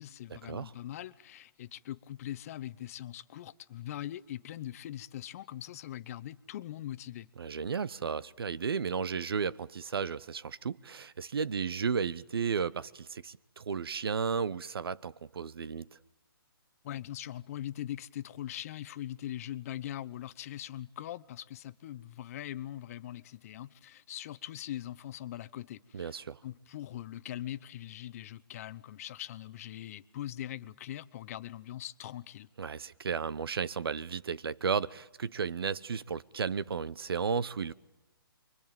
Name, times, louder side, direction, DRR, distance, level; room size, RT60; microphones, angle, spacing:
voice 1, 0.0-7.3 16.8-32.5, left 12 dB, 40° left, 0.9 m, -41 dB
voice 2, 7.4-15.9 25.9-26.4 32.6-37.7, right 6 dB, 75° right, 1.0 m, -34 dB
28.0 x 23.5 x 9.1 m
hypercardioid pair, 150°, 13 cm